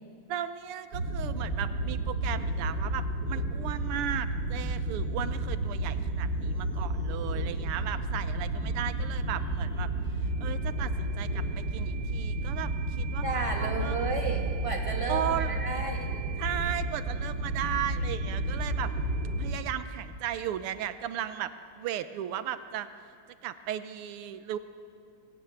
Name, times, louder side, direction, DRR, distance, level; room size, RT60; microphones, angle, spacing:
voice 1, 0.3-9.9 10.4-13.2 13.6-14.0 15.1-15.6 16.4-18.9 19.4-22.9 23.4-24.6, right 10 dB, 90° right, 12 dB, 1.7 m, -36 dB
sound 1, 0.9-19.5, right 2 dB, 55° right, 3.2 m, -31 dB
voice 2, 13.2-16.2, right 3 dB, 15° right, 1 dB, 2.6 m, -33 dB
19.5 x 16.5 x 9.1 m, 2.4 s
omnidirectional pair, 2.4 m